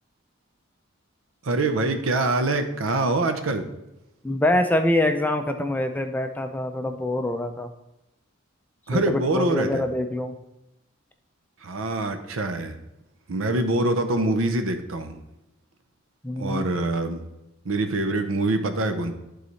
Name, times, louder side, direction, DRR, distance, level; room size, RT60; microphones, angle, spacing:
voice 1, 1.4-3.7 8.9-9.8 11.6-12.8 13.3-15.2 16.4-17.2 17.6-19.1, right 2 dB, 80° right, 8 dB, 0.7 m, -24 dB
voice 2, 4.2-7.7 8.9-10.4 16.2-16.7, left 1 dB, 10° left, 6 dB, 0.4 m, -25 dB
11.0 x 3.9 x 3.2 m, 0.92 s
head